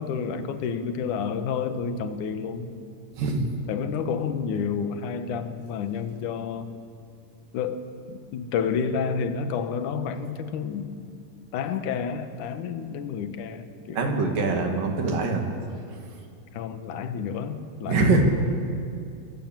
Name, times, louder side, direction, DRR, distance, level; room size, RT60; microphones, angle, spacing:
voice 1, 0.0-2.7 3.7-6.7 7.5-11.1 11.5-14.2 16.5-18.2, left 6 dB, 65° left, 8 dB, 2.6 m, -30 dB
voice 2, 3.2-3.5 13.9-15.4 17.9-18.2, right 3 dB, 70° right, 3 dB, 4.1 m, -23 dB
25.5 x 23.5 x 7.5 m, 2.4 s
omnidirectional pair, 4.0 m